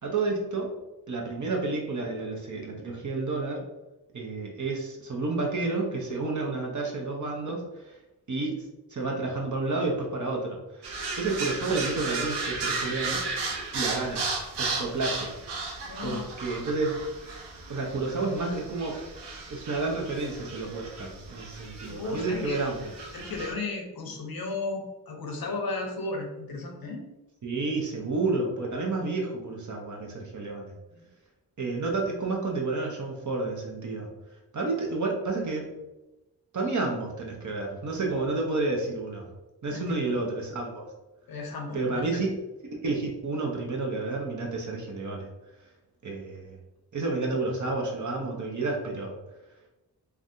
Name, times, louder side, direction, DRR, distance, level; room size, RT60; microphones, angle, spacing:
voice 1, 0.0-0.7 1.1-3.6 4.1-7.6 8.3-8.5 8.9-10.6 11.2-13.2 13.7-14.2 14.6-15.3 16.0-17.0 17.7-19.0 19.5-22.8 27.4-30.7 31.6-34.1 34.5-35.7 36.5-39.3 39.6-40.9 41.7-42.3 42.6-45.3 46.0-46.6 46.9-49.1, right 3 dB, 45° right, 0 dB, 0.9 m, -30 dB
sound 1, 10.8-23.5, right 3 dB, 80° right, 0.7 m, -35 dB
voice 2, 15.9-16.3 21.9-22.9 23.1-27.1 30.9-31.0 39.7-39.9 41.3-42.2, left 3 dB, 60° left, 2 dB, 0.8 m, -34 dB
3.3 x 2.3 x 2.6 m, 1.0 s
cardioid pair, 45°, 41 cm